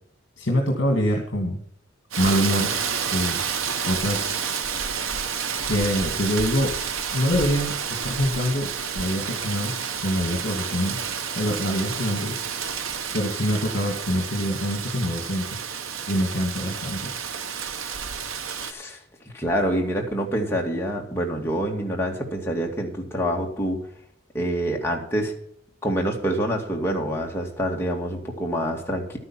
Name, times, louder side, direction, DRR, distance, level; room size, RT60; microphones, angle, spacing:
voice 1, 0.4-1.6 2.2-2.8 3.1-3.4 3.8-4.4 5.6-6.7 7.1-7.8 8.0-9.7 10.0-11.0 11.3-12.4 13.1-15.6 16.1-17.1, equal, 65° left, 2 dB, 2.3 m, -25 dB
Rain, 2.1-18.7, right 7 dB, 90° right, 1.1 m, -30 dB
voice 2, 18.6-19.0 19.3-23.8 24.3-25.3 25.8-29.2, equal, 10° left, -1 dB, 2.3 m, -26 dB
12.0 x 9.7 x 5.8 m, 0.68 s
head